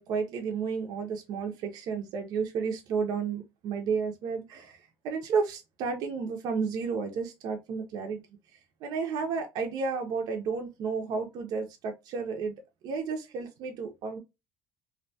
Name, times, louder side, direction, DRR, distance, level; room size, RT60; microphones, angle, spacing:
voice 1, 0.0-8.2 8.5-12.5 12.8-14.2, right 5 dB, 60° right, 0.4 m, -32 dB
2.5 x 2.1 x 2.6 m
cardioid pair, 120°, 7 cm